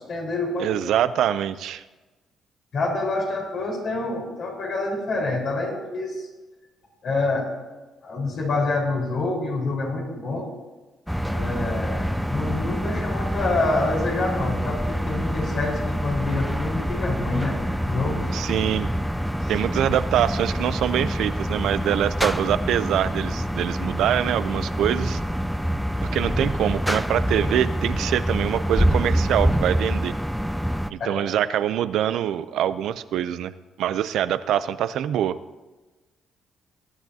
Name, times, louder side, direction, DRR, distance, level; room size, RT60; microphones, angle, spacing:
voice 1, 0.1-0.7 2.7-6.3 7.0-7.5 8.0-10.5 11.3-18.3 19.4-19.6 31.0-31.2, left 2 dB, 60° left, -1 dB, 4.4 m, -27 dB
voice 2, 0.6-1.8 18.3-18.9 19.5-25.2 26.1-30.2 30.9-33.5 33.8-35.4, right 11 dB, 80° right, 14 dB, 0.5 m, -24 dB
sound 1, 11.1-30.9, equal, ahead, 0.4 m, -26 dB
20.0 x 10.5 x 2.8 m, 1.2 s
cardioid pair, 90°, 0 cm